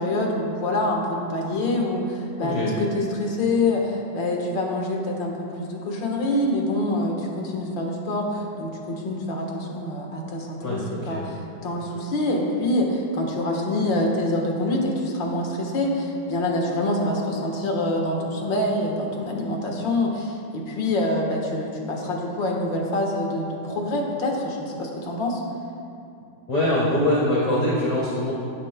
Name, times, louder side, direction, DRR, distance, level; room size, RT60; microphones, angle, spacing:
voice 1, 0.0-25.4, left 1 dB, 90° left, 0 dB, 2.1 m, -26 dB
voice 2, 10.6-11.2 26.5-28.3, left 1 dB, 20° left, -11 dB, 2.3 m, -23 dB
16.5 x 10.0 x 2.2 m, 2.5 s
omnidirectional pair, 2.0 m